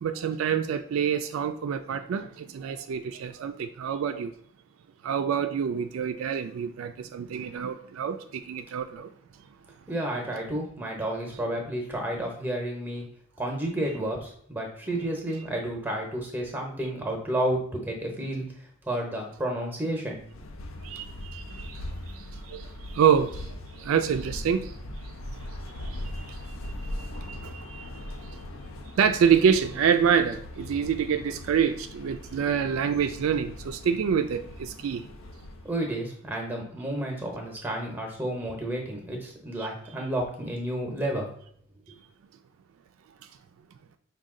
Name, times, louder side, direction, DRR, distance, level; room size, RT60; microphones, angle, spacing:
voice 1, 0.0-4.3 5.0-9.1 20.8-21.8 22.1-23.4 23.8-24.7 25.8-26.4 26.6-28.4 29.0-35.0, right 7 dB, 75° right, 0.3 m, -27 dB
voice 2, 9.9-13.0 13.4-18.5 18.8-20.2 35.6-41.3, right 1 dB, 10° right, 0.7 m, -31 dB
sound 1, 20.1-35.9, left 1 dB, 75° left, 0.5 m, -40 dB
5.2 x 2.3 x 3.6 m
head